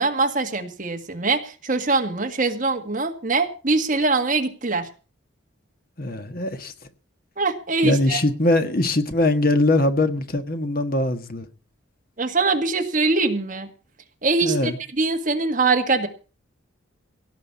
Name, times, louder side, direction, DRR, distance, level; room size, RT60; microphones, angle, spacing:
voice 1, 0.0-4.9 7.4-8.2 12.2-13.7 14.2-14.7 15.0-16.1, right 3 dB, 40° right, 1.8 m, -22 dB
voice 2, 6.0-6.7 7.8-11.5 14.4-14.8, left 2 dB, 45° left, 1.5 m, -21 dB
17.5 x 6.2 x 8.4 m
head